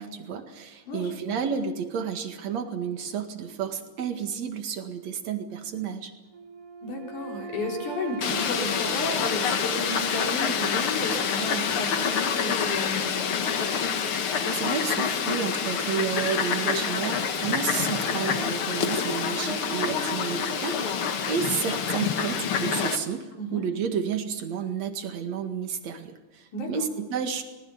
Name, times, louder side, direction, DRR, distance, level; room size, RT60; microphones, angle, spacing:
voice 1, 0.0-6.1 14.5-27.4, right 7 dB, 60° right, 6 dB, 3.1 m, -31 dB
voice 2, 0.9-1.4 6.8-13.4 23.4-23.6 26.5-26.9, left 2 dB, 70° left, 1 dB, 5.4 m, -33 dB
Wind instrument woodwind instrument, 6.3-10.2, right 6 dB, 80° right, 3.0 m, -42 dB
Fowl, 8.2-23.0, left 6 dB, 50° left, 1.9 m, -27 dB
24.5 x 19.5 x 7.1 m, 1.2 s
omnidirectional pair, 3.6 m